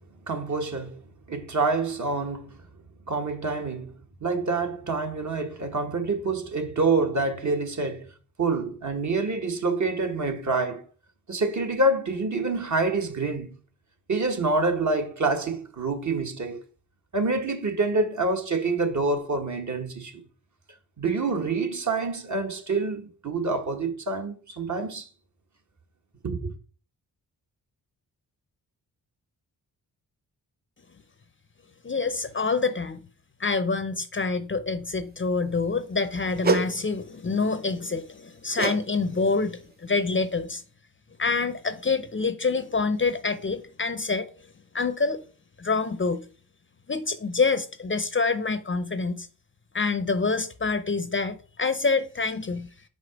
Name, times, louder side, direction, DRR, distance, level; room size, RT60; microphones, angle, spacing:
voice 1, 0.3-1.0 1.3-2.6 3.1-3.9 4.2-8.1 8.4-10.8 11.3-13.5 14.1-16.6 17.1-20.2 21.0-25.1 26.2-26.5, right 3 dB, 45° right, 1.3 m, -27 dB
voice 2, 31.8-33.0 33.4-40.6 41.2-44.3 44.7-45.2 45.6-46.2 46.9-49.3 49.7-52.7, left 4 dB, 30° left, 0.6 m, -26 dB
sound 1, 36.4-36.7 38.6-38.8 39.1-39.4 40.0-40.1, right 3 dB, 25° right, 0.6 m, -25 dB
5.1 x 3.8 x 5.0 m
cardioid pair, 55°, 40 cm